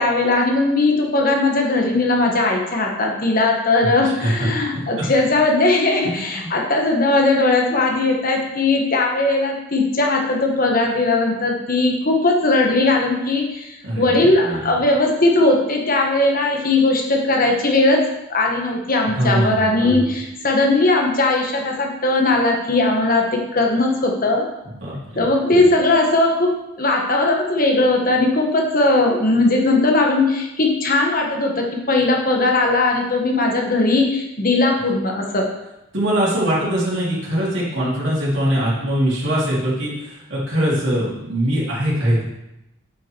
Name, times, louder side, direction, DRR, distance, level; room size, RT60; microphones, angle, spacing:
voice 1, 0.0-18.0 18.3-24.4 25.1-26.5 26.8-35.4, left 2 dB, 45° left, 1 dB, 1.4 m, -18 dB
voice 2, 6.0-6.5 13.8-14.8 19.1-20.0 24.6-25.6 35.9-42.2, right 1 dB, 60° right, -7 dB, 3.2 m, -22 dB
8.6 x 5.6 x 4.6 m, 0.91 s
head